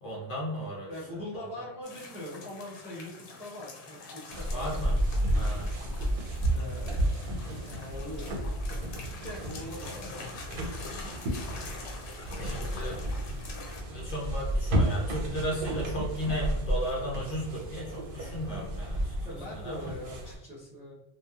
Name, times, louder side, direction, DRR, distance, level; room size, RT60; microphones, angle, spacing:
voice 1, 0.0-0.9 1.3-1.4 4.5-5.0 5.3-5.7 12.3-13.0 13.3-13.4 13.9-19.1 19.5-19.9, equal, 55° left, -3 dB, 0.8 m, -35 dB
voice 2, 0.9-5.4 6.5-7.3 7.6-8.3 9.2-10.5 19.2-20.9, left 1 dB, 10° right, -7 dB, 0.4 m, -42 dB
sound 1, 1.8-13.8, left 3 dB, 90° left, 0.9 m, -46 dB
sound 2, 4.3-20.4, equal, 60° right, 0.7 m, -32 dB
2.8 x 2.2 x 2.3 m, 0.86 s
omnidirectional pair, 1.1 m